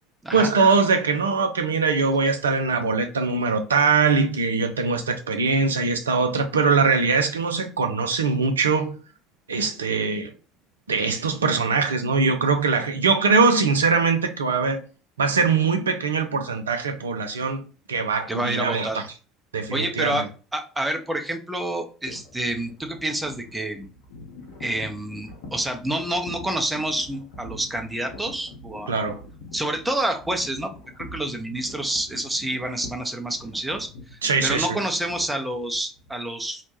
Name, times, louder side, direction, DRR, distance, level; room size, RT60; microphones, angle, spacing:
voice 1, 0.3-9.0 9.5-10.3 10.9-14.8 15.2-17.6 17.9-19.0 19.5-20.2 28.9-29.2 34.2-34.8, right 4 dB, 75° right, 0.4 m, -22 dB
voice 2, 18.3-19.0 19.7-23.9 24.6-29.0 29.5-30.7 31.1-36.6, right 1 dB, 10° right, 0.6 m, -28 dB
sound 1, 22.1-36.1, left 2 dB, 65° left, 0.7 m, -43 dB
2.8 x 2.1 x 3.0 m
figure-of-eight pair, 60°, 0 cm